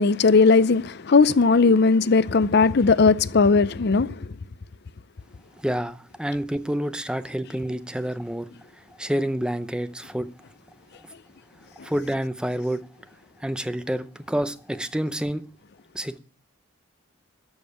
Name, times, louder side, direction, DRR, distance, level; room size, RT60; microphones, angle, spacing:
voice 1, 0.0-4.1, left 4 dB, 55° left, 0.5 m, -18 dB
voice 2, 5.6-8.5 9.0-10.3 11.8-12.8 13.4-15.4 15.9-16.2, equal, 5° right, 0.7 m, -28 dB
13.5 x 5.4 x 9.3 m
head